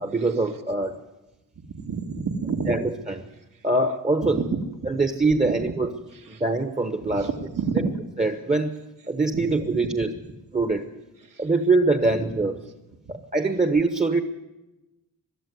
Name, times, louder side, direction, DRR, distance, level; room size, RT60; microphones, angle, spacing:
voice 1, 0.0-1.0 2.7-3.2 3.6-4.4 4.8-5.9 6.3-7.3 7.8-7.9 8.2-8.8 9.1-10.1 10.5-10.9 11.4-12.5 13.1-14.2, right 3 dB, 20° right, 8 dB, 1.1 m, -23 dB
voice 2, 1.7-2.8 4.4-4.9 5.4-5.5 7.0-7.9 9.3-9.4 11.3-11.4, right 5 dB, 60° right, 4 dB, 2.0 m, -28 dB
22.5 x 12.5 x 9.5 m, 1.0 s
wide cardioid pair, 140°, 36 cm